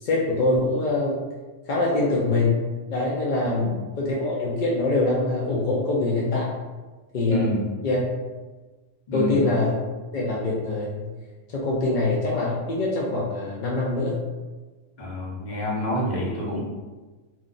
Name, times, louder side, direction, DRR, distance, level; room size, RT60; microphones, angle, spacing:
voice 1, 0.0-1.2 1.7-2.6 2.9-6.5 7.1-7.5 7.8-8.0 9.1-9.8 10.1-11.1 11.5-14.1, left 2 dB, 60° left, -4 dB, 0.5 m, -24 dB
voice 2, 3.4-3.8 7.3-7.6 9.1-9.4 15.0-16.6, left 1 dB, 40° left, -5 dB, 0.8 m, -28 dB
2.5 x 2.3 x 3.8 m, 1.3 s
omnidirectional pair, 1.3 m